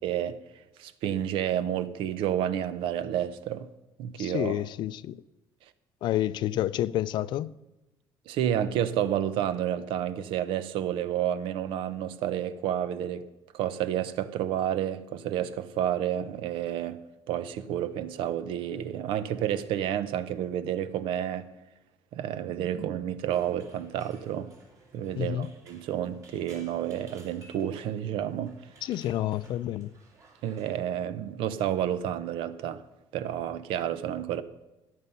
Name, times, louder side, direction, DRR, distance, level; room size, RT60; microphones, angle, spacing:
voice 1, 0.0-0.4 0.8-3.7 4.0-4.6 8.3-13.2 13.5-17.0 17.3-21.5 22.1-24.5 24.9-28.5 30.4-32.8 33.1-34.4, right 10 dB, 80° right, 0.8 m, -30 dB
voice 2, 4.2-5.2 6.0-7.5 25.2-25.5 28.8-29.9, left 13 dB, 60° left, 0.4 m, -29 dB
sound 1, 23.3-30.8, right 2 dB, 35° right, 2.7 m, -57 dB
14.5 x 9.5 x 5.5 m
cardioid pair, 155°, 9 cm